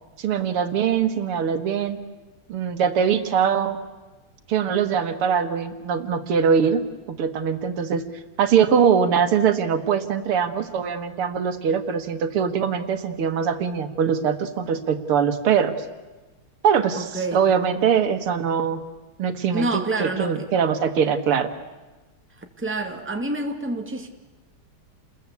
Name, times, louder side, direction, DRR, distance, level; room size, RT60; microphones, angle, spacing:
voice 1, 0.2-2.0 2.5-3.8 4.5-8.1 8.4-15.8 16.6-18.8 19.2-21.5, right 7 dB, 85° right, 8 dB, 2.4 m, -22 dB
voice 2, 17.0-17.4 19.5-20.5 22.6-24.1, right 2 dB, 5° right, 4 dB, 2.0 m, -27 dB
29.5 x 21.0 x 8.3 m, 1.2 s
omnidirectional pair, 2.4 m